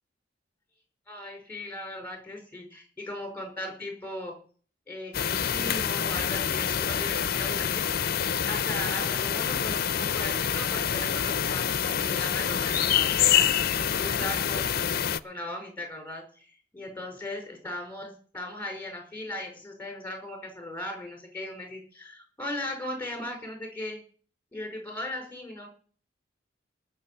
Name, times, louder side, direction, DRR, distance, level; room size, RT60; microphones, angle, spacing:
voice 1, 1.1-4.4 4.9-8.0 8.5-13.5 14.0-24.0 24.5-25.7, left 1 dB, 10° left, 3 dB, 5.1 m, -38 dB
sound 1, 5.1-15.2, left 9 dB, 50° left, 0.6 m, -26 dB
19.0 x 6.8 x 5.7 m, 0.41 s
head